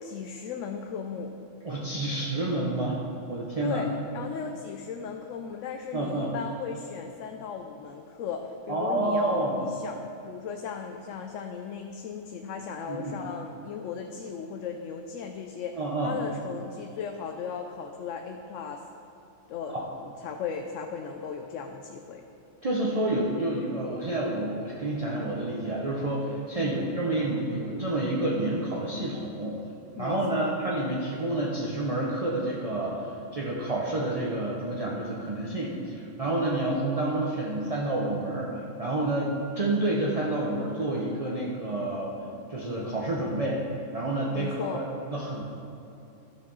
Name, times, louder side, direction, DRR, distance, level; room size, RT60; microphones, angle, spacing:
voice 1, 0.0-1.3 3.6-18.8 19.5-19.8 20.0-22.2 26.6-26.9 29.9-30.6 44.3-44.9, left 6 dB, 90° left, 4 dB, 0.9 m, -36 dB
voice 2, 1.6-3.0 3.3-3.8 5.9-6.3 8.7-9.6 12.9-13.2 15.7-16.2 19.7-19.8 22.6-29.6 30.0-42.1 42.5-43.6 43.9-44.8 45.1-45.4, right 2 dB, 30° right, -4 dB, 0.9 m, -29 dB
12.5 x 4.9 x 5.5 m, 2.7 s
omnidirectional pair, 1.3 m